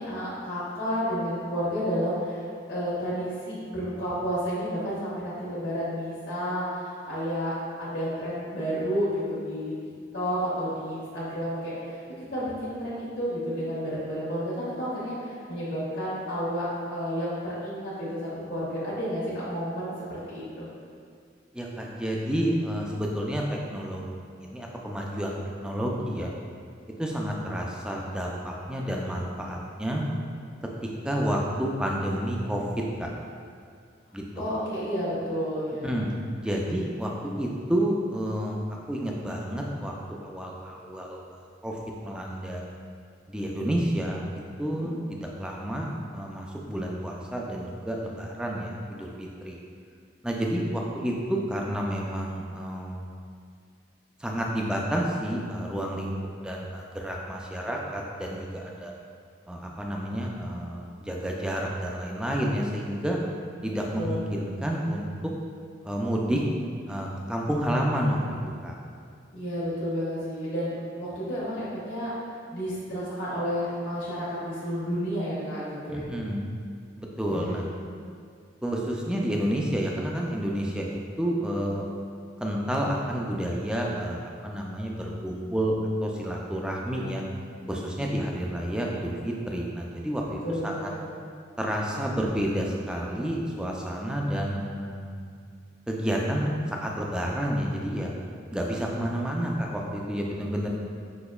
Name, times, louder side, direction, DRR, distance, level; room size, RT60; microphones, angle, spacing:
voice 1, 0.0-9.7 10.1-12.0 12.3-20.7 34.3-35.9 44.7-44.9 63.9-64.2 69.3-72.1 72.5-76.1 77.3-77.6 90.4-91.0, equal, 75° left, -12 dB, 1.3 m, -31 dB
voice 2, 21.5-23.4 23.7-24.1 24.4-26.3 27.0-30.0 31.0-32.6 33.0-33.1 34.1-34.5 35.8-36.1 36.4-37.1 37.4-38.6 38.9-39.9 40.2-41.2 41.6-42.6 43.3-44.2 44.6-49.6 50.2-53.0 54.2-56.1 56.4-58.9 59.5-63.2 63.6-65.1 65.8-66.4 66.9-68.2 68.6-68.7 75.9-76.5 77.0-77.7 78.6-81.9 82.4-87.2 87.7-90.9 91.6-95.2 95.9-98.1 98.5-100.7, equal, 5° right, -2 dB, 0.3 m, -30 dB
6.0 x 3.0 x 2.3 m, 2.2 s
head